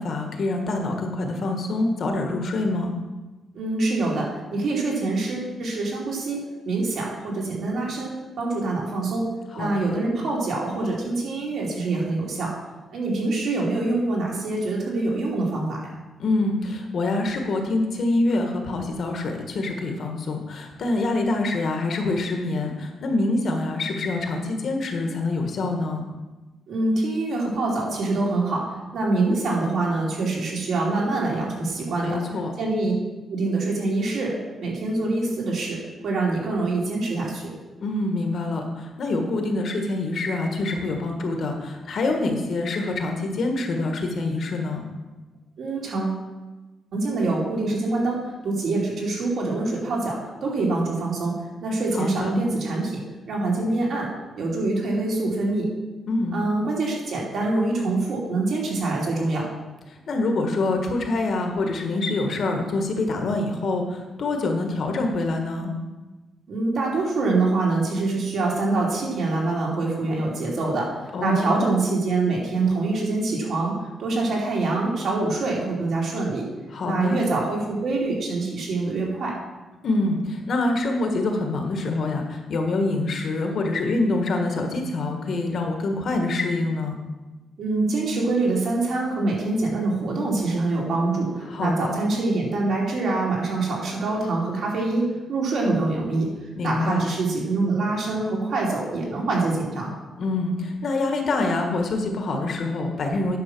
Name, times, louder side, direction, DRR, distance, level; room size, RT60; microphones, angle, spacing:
voice 1, 0.0-2.9 9.5-10.0 16.2-26.1 32.0-32.5 37.8-44.9 51.9-52.3 56.1-56.4 60.1-65.7 71.1-71.7 76.7-77.2 79.8-87.0 91.5-92.0 96.6-97.0 100.2-103.4, left 2 dB, 50° left, 3 dB, 1.4 m, -25 dB
voice 2, 3.5-12.5 12.9-15.8 26.7-32.2 32.6-32.9 33.3-35.8 36.0-37.5 45.6-46.2 46.9-51.3 51.6-54.1 54.4-55.7 56.3-59.5 66.5-76.4 76.8-79.3 87.6-96.3 96.6-99.9, right 3 dB, 60° right, -3 dB, 2.9 m, -25 dB
9.6 x 6.1 x 6.1 m, 1.2 s
cardioid pair, 160°, 0 cm